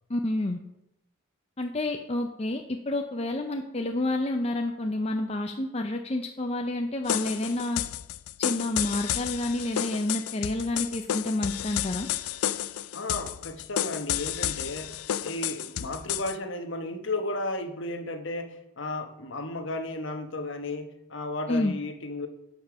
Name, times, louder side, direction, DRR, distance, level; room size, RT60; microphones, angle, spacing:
voice 1, 0.1-0.6 1.6-7.8 8.4-12.1 21.5-21.7, left 1 dB, 30° left, 4 dB, 0.5 m, -29 dB
sound 1, 7.1-16.4, left 11 dB, 85° left, 0.4 m, -31 dB
voice 2, 12.9-14.9 15.2-22.3, left 2 dB, 55° left, 6 dB, 1.2 m, -34 dB
11.5 x 5.6 x 6.0 m, 0.85 s
head